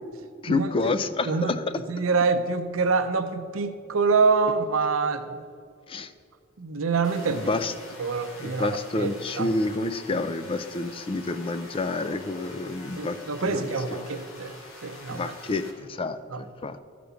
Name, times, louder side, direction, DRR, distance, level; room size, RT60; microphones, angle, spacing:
voice 1, 0.4-1.6 5.9-6.1 7.3-7.7 8.4-13.6 13.9-14.0 15.1-16.8, left 3 dB, 25° left, 12 dB, 0.4 m, -29 dB
voice 2, 1.9-5.4 6.6-7.5 8.0-8.7 9.0-9.5 13.0-14.5 14.8-15.3 16.3-16.4, right 4 dB, 85° right, 8 dB, 0.7 m, -26 dB
sound 1, 7.0-15.7, left 2 dB, 75° left, 1.7 m, -45 dB
12.5 x 5.1 x 6.9 m, 2.3 s
head